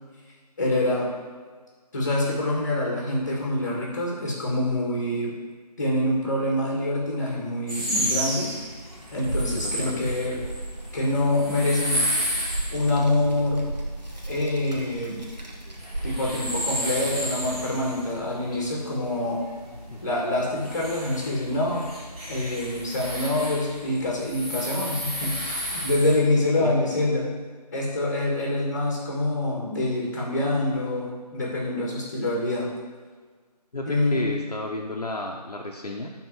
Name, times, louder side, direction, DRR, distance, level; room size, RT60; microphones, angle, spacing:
voice 1, 0.6-1.1 1.9-5.3 5.8-8.5 9.1-10.4 10.9-12.1 12.7-13.7 14.3-15.3 16.0-19.4 20.0-21.9 22.3-27.3 27.7-32.7 33.8-34.4, left 1 dB, 25° left, -3 dB, 1.6 m, -26 dB
sound 1, 7.7-26.2, equal, 10° right, 1.2 m, -33 dB
Child speech kid speaking, 8.3-22.7, right 1 dB, 80° right, 1.4 m, -37 dB
voice 2, 9.5-10.0 19.9-20.0 26.6-26.7 33.7-36.1, left 2 dB, 65° left, 0 dB, 0.9 m, -32 dB
8.4 x 3.9 x 4.7 m, 1.5 s
figure-of-eight pair, 160°, 21 cm